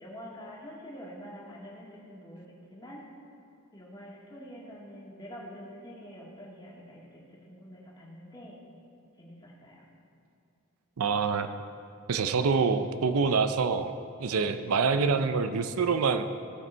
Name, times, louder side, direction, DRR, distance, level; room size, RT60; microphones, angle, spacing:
voice 1, 0.0-3.1 3.7-8.6 9.2-9.8, equal, 20° left, -4 dB, 1.9 m, -46 dB
voice 2, 11.0-11.5 12.1-16.2, right 5 dB, 80° right, 9 dB, 0.5 m, -26 dB
16.5 x 6.0 x 4.5 m, 2.6 s
head